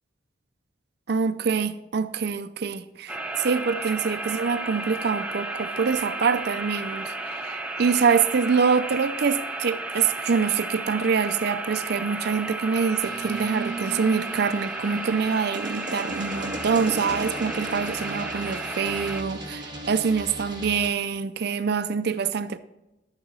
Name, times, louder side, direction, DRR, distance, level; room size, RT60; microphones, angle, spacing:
voice 1, 1.1-22.6, right 5 dB, 65° right, 0.5 m, -25 dB
sound 1, 3.1-19.2, right 2 dB, 5° right, 0.7 m, -33 dB
sound 2, 13.0-20.9, right 1 dB, 25° right, 2.1 m, -36 dB
12.0 x 9.0 x 4.0 m
head